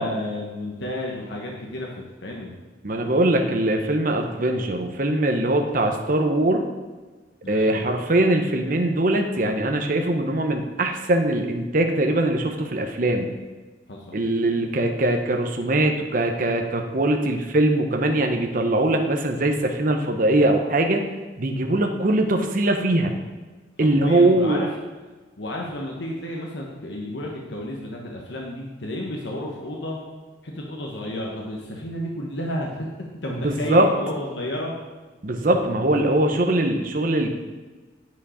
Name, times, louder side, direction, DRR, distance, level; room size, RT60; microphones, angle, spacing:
voice 1, 0.0-2.5 7.4-7.9 13.9-14.2 23.8-24.7 25.4-30.0 30.4-32.9 33.2-34.7, left 1 dB, 75° left, -1 dB, 1.2 m, -32 dB
voice 2, 2.8-6.6 7.5-13.3 14.1-21.0 21.4-23.1 23.8-24.6 33.3-33.9 35.2-37.3, right 1 dB, 45° right, 4 dB, 0.8 m, -21 dB
9.4 x 5.1 x 5.0 m, 1.3 s
head